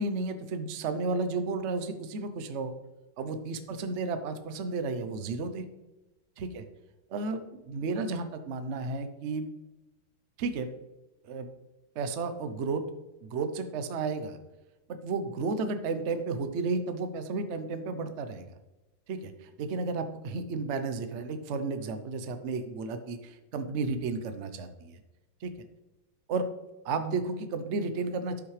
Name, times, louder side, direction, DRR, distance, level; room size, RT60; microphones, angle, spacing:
voice 1, 0.0-2.7 3.2-5.6 6.4-6.6 7.1-7.4 7.7-9.4 10.4-10.7 11.2-11.5 12.0-12.8 13.2-14.4 14.9-18.6 19.1-25.0 25.4-25.5 26.3-26.5 26.8-28.4, right 3 dB, 75° right, 9 dB, 0.6 m, -32 dB
12.0 x 6.0 x 3.2 m, 1.0 s
omnidirectional pair, 2.3 m